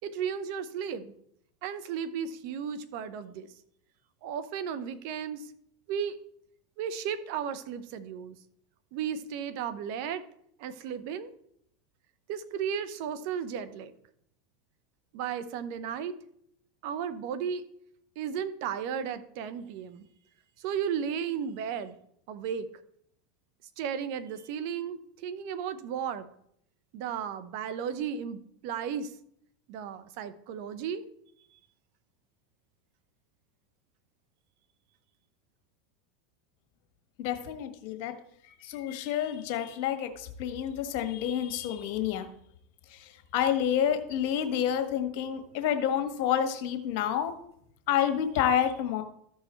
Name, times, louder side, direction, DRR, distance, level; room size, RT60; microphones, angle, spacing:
voice 1, 0.0-1.1 1.6-3.5 4.2-5.5 5.9-6.2 6.8-8.3 8.9-10.2 10.6-11.3 12.3-13.9 15.1-16.1 16.8-17.6 18.2-20.1 20.6-22.0 22.3-22.7 23.8-26.3 26.9-29.1 29.7-31.0, right 7 dB, 65° right, 12 dB, 0.8 m, -34 dB
voice 2, 37.2-38.1 38.5-42.3 42.9-47.3 47.9-49.0, left 9 dB, 60° left, 7 dB, 1.5 m, -29 dB
13.5 x 4.7 x 4.5 m, 0.70 s
hypercardioid pair, 100°, 0 cm